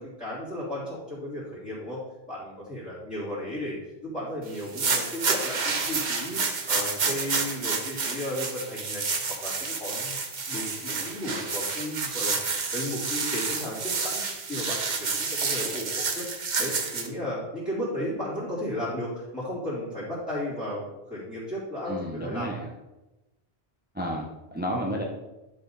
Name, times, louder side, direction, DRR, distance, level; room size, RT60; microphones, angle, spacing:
voice 1, 0.0-2.0 2.3-10.1 10.5-12.3 12.7-14.2 14.5-16.2 16.6-22.5, left 1 dB, 5° left, -13 dB, 3.4 m, -34 dB
sound 1, 4.6-17.1, right 4 dB, 45° right, 1.0 m, -29 dB
voice 2, 21.8-22.7 23.9-25.0, equal, 10° right, -1 dB, 0.9 m, -31 dB
11.5 x 5.1 x 4.1 m, 1.0 s
omnidirectional pair, 1.1 m